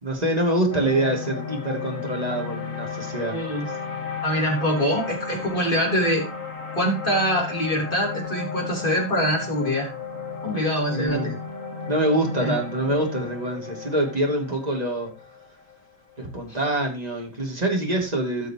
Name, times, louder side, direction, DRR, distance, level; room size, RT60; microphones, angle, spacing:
voice 1, 0.0-3.4 10.9-11.4 11.9-15.1 16.2-18.5, right 1 dB, 20° right, 2.7 m, -25 dB
sound 1, 0.7-17.0, left 5 dB, 40° left, 2.1 m, -34 dB
voice 2, 3.3-3.7 4.2-6.3 6.7-9.9 10.4-11.3 12.4-12.6 16.5-16.6, equal, 25° left, 3.7 m, -24 dB
17.0 x 6.4 x 3.0 m
omnidirectional pair, 2.1 m